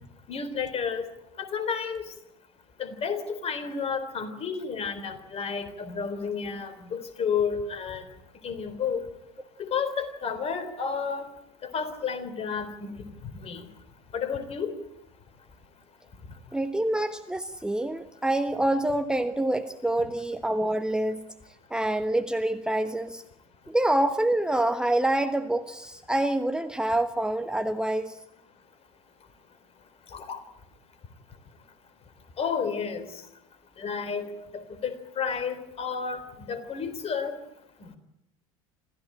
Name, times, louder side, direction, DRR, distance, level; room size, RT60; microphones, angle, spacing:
voice 1, 0.3-1.1 1.4-2.0 2.8-8.1 8.4-9.0 9.6-11.3 11.6-13.1 13.3-13.6 14.1-14.7 30.1-30.4 32.4-33.1 33.8-34.3 34.5-37.4 37.8-38.0, left 6 dB, 35° left, 10 dB, 3.8 m, -31 dB
voice 2, 16.5-21.2 21.7-23.2 23.7-28.2, right 1 dB, 5° right, 8 dB, 1.2 m, -26 dB
26.5 x 15.0 x 8.9 m, 0.87 s
figure-of-eight pair, 70°, 17 cm